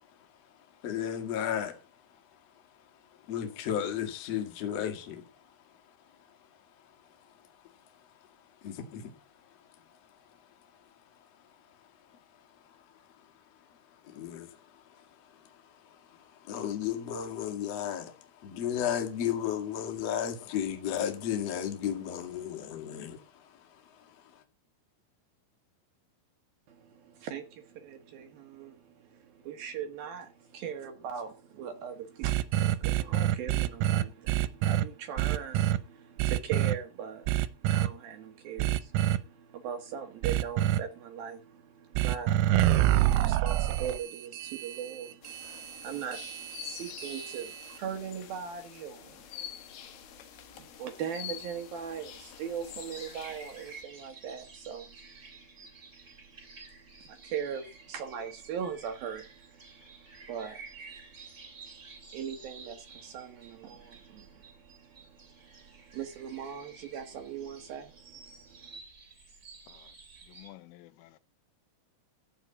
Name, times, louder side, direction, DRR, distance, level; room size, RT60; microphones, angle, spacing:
voice 1, 0.8-1.8 3.3-5.3 8.6-9.1 14.0-14.5 16.1-23.2 23.7-23.8, left 9 dB, 45° left, 2.5 m, -33 dB
voice 2, 26.7-49.3 49.9-50.0 50.5-55.0 56.0-56.1 57.0-68.8, right 8 dB, 70° right, 2.3 m, -40 dB
sound 1, 32.2-34.8 35.2-35.8 36.2-36.7 37.3-37.9 38.6-39.2 40.2-40.8 42.0-47.8, right 13 dB, 90° right, 3.5 m, -27 dB
sound 2, 45.2-53.8, left 10 dB, 65° left, 2.9 m, -46 dB
sound 3, 52.0-70.5, right 4 dB, 25° right, 2.2 m, -52 dB
voice 3, 70.3-71.2, left 16 dB, 80° left, 3.4 m, -52 dB
14.5 x 5.4 x 8.4 m
omnidirectional pair, 5.8 m